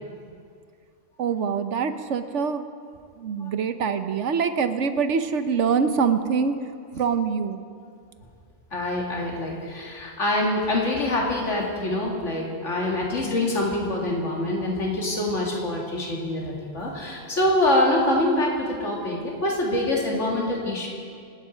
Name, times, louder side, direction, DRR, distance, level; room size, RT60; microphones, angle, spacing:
voice 1, 1.2-2.7 3.2-6.5 6.9-7.6, right 6 dB, 75° right, 9 dB, 1.2 m, -24 dB
voice 2, 8.7-20.9, left 1 dB, 80° left, -2 dB, 2.6 m, -25 dB
26.5 x 9.7 x 5.1 m, 2.3 s
omnidirectional pair, 1.2 m